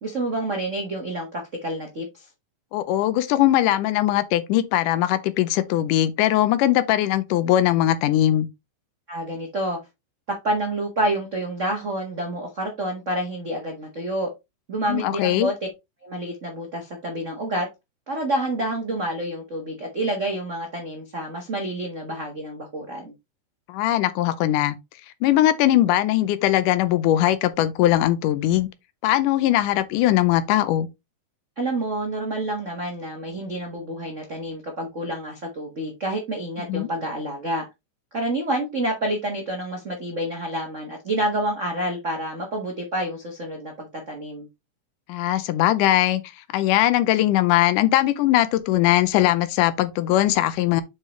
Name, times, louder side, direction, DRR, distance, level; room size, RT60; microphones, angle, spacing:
voice 1, 0.0-2.3 9.1-9.8 10.3-14.3 14.7-15.5 16.0-17.7 18.1-23.1 31.6-37.6 38.1-44.5, right 1 dB, 75° right, 0.6 m, -28 dB
voice 2, 2.7-8.5 14.9-15.5 23.7-24.8 25.2-28.7 29.0-30.9 36.7-36.9 45.1-46.2 46.5-50.8, left 13 dB, 85° left, 2.2 m, -20 dB
7.6 x 4.9 x 3.1 m
omnidirectional pair, 3.6 m